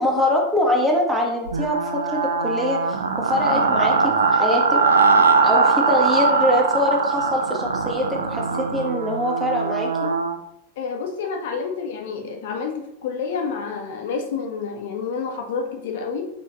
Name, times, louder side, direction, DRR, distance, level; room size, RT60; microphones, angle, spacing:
voice 1, 0.0-4.8 5.4-10.1, left 1 dB, 10° right, 0 dB, 1.1 m, -23 dB
sound 1, 1.5-10.4, right 4 dB, 70° right, 0.4 m, -21 dB
voice 2, 10.8-16.3, left 5 dB, 55° left, 2 dB, 0.8 m, -29 dB
6.0 x 3.0 x 2.9 m, 0.77 s
figure-of-eight pair, 90°, 0 cm